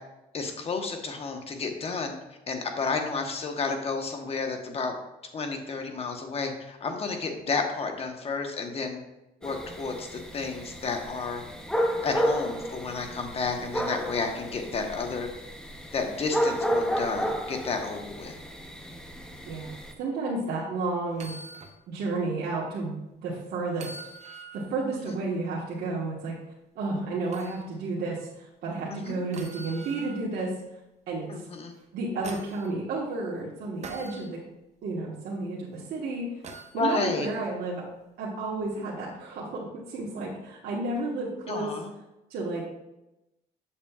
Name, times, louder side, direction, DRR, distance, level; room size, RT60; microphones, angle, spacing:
voice 1, 0.3-2.1 2.5-5.0 5.3-9.0 9.4-11.4 12.0-15.3 15.9-18.3 25.1-25.2 28.9-29.2 31.3-31.7 36.7-37.3 41.5-41.9, left 4 dB, 35° left, 4 dB, 1.1 m, -31 dB
sound 1, 9.4-19.9, equal, 5° left, 0.8 m, -32 dB
voice 2, 19.5-21.3 21.9-23.9 24.5-26.3 26.7-30.5 31.1-31.4 31.9-34.4 34.8-36.4 36.7-37.8 38.2-41.7 42.3-42.6, right 3 dB, 70° right, -5 dB, 1.3 m, -32 dB
sound 2, 21.1-21.8 22.2-22.3 23.7-24.7 27.3-27.6 29.3-30.3 31.7-32.7 33.8-34.2 36.4-36.8 38.6-38.7, right 3 dB, 40° right, 0.8 m, -43 dB
7.3 x 6.8 x 2.4 m, 0.95 s
cardioid pair, 110°, 17 cm